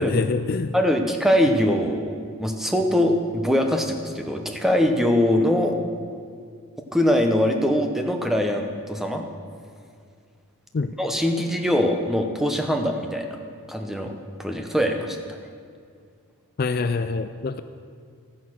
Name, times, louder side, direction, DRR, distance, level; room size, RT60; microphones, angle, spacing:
voice 1, 0.0-0.7 10.7-10.9 16.6-17.6, left 3 dB, 45° left, 10 dB, 0.4 m, -25 dB
voice 2, 0.7-5.8 6.9-9.2 11.0-13.4 13.7-14.1 14.4-15.4, equal, ahead, 4 dB, 0.8 m, -22 dB
13.5 x 10.0 x 6.4 m, 2.2 s
head